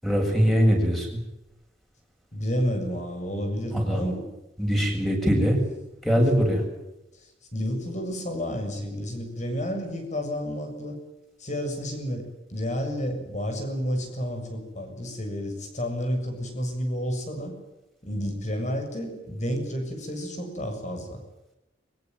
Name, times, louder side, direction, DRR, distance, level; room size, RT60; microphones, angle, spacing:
voice 1, 0.0-1.1 3.8-4.1 4.6-5.6 6.0-6.6, equal, ahead, 2 dB, 7.6 m, -22 dB
voice 2, 2.3-4.3 6.2-6.5 7.2-11.0 11.4-17.5 18.0-21.2, equal, 40° left, 5 dB, 7.2 m, -31 dB
23.5 x 23.5 x 9.4 m, 0.95 s
head